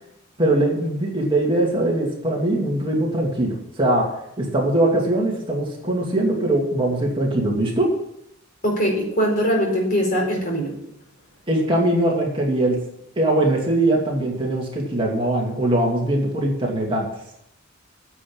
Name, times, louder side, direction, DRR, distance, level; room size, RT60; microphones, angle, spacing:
voice 1, 0.4-4.1 4.4-7.9 11.5-12.8 13.2-17.1, right 1 dB, 25° right, -2 dB, 2.5 m, -21 dB
voice 2, 8.6-10.7, equal, 40° left, 0 dB, 4.4 m, -21 dB
9.8 x 7.9 x 8.8 m, 0.77 s
head